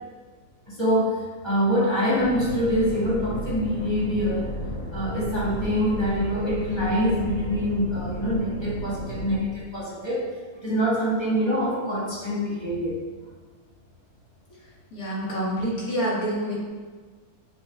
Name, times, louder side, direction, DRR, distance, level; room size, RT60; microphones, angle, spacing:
voice 1, 0.7-4.6 4.9-10.3 10.6-12.9, equal, 15° left, -9 dB, 1.9 m, -25 dB
sound 1, 2.2-9.4, equal, 35° left, 0.6 m, -34 dB
voice 2, 14.9-16.7, equal, 75° left, -6 dB, 2.2 m, -27 dB
7.2 x 6.3 x 2.4 m, 1.5 s
omnidirectional pair, 1.6 m